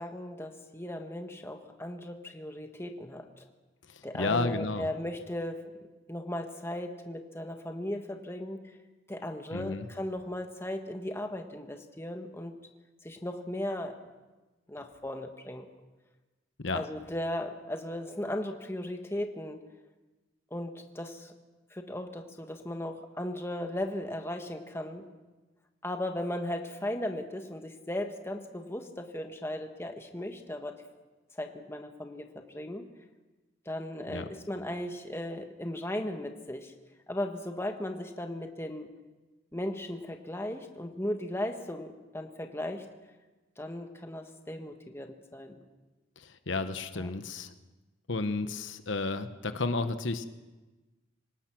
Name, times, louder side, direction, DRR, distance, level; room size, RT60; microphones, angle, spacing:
voice 1, 0.0-3.4 4.0-5.7 6.1-8.8 9.1-12.5 13.0-14.0 14.7-15.7 16.7-19.6 20.5-21.3 21.7-25.0 25.8-30.8 31.3-32.9 33.6-36.7 37.1-38.9 39.5-42.9 43.6-45.6 46.9-47.1, left 1 dB, 15° left, 5 dB, 1.4 m, -37 dB
voice 2, 3.9-4.9 9.5-9.9 16.6-16.8 34.1-34.3 46.2-47.5 48.1-50.3, left 3 dB, 70° left, 10 dB, 1.0 m, -32 dB
26.5 x 18.0 x 6.0 m, 1.2 s
head